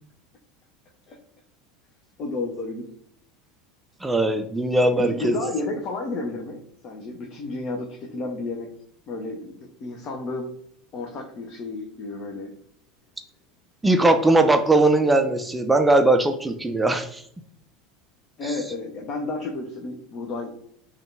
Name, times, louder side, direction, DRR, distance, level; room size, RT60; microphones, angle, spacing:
voice 1, 2.2-2.9 4.9-8.7 9.1-10.5 10.9-12.5 18.4-20.5, left 3 dB, 40° left, 1 dB, 0.5 m, -32 dB
voice 2, 4.0-5.4 13.8-17.2, right 2 dB, 10° right, 7 dB, 0.3 m, -19 dB
3.5 x 2.3 x 3.3 m, 0.68 s
figure-of-eight pair, 75°, 0 cm